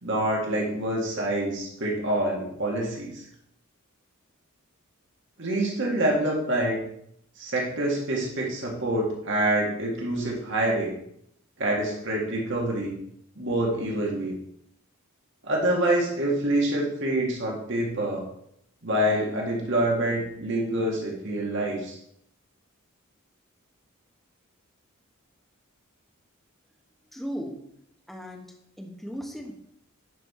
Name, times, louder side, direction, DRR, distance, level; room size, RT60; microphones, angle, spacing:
voice 1, 0.0-3.2 5.4-6.8 7.4-10.9 11.6-13.0 13.4-14.3 15.4-18.2 18.8-22.0, right 1 dB, 60° right, -2 dB, 2.0 m, -26 dB
voice 2, 27.1-27.6 28.1-28.5 28.8-29.5, equal, ahead, 0 dB, 1.2 m, -36 dB
10.5 x 5.5 x 4.3 m, 0.73 s
head